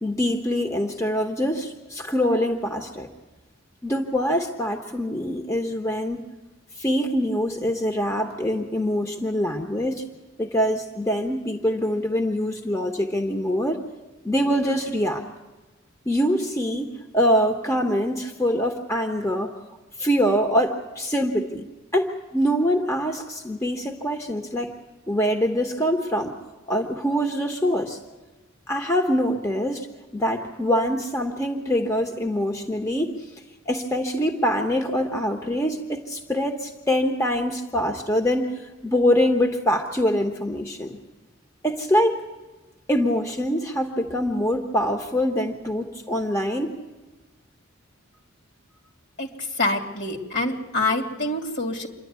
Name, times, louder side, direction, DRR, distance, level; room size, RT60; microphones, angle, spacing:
voice 1, 0.0-3.1 3.8-6.2 6.8-10.1 10.4-13.8 14.2-15.2 16.1-19.5 20.0-21.7 21.9-24.7 25.1-26.3 26.7-28.0 28.7-29.9 30.1-33.1 33.7-38.5 38.8-41.0 41.6-42.2 42.9-46.7, equal, 15° left, 4 dB, 1.1 m, -24 dB
voice 2, 49.2-51.9, left 2 dB, 60° left, 3 dB, 2.7 m, -26 dB
27.0 x 11.5 x 9.5 m, 1.2 s
head